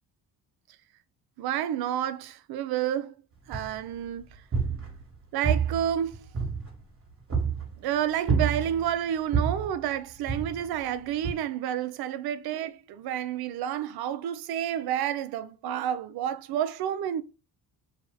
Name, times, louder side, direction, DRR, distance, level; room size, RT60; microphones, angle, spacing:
voice 1, 1.4-3.2 3.5-4.3 5.3-6.3 7.8-17.2, right 10 dB, 60° right, 0.5 m, -30 dB
sound 1, 3.5-4.0 4.3-5.1 5.4-6.9 7.3-7.7 8.3-8.9 9.3-9.7 10.3-10.8 11.2-11.3, right 6 dB, 30° right, 1.5 m, -28 dB
2.8 x 2.3 x 3.2 m
supercardioid pair, 80°, 43 cm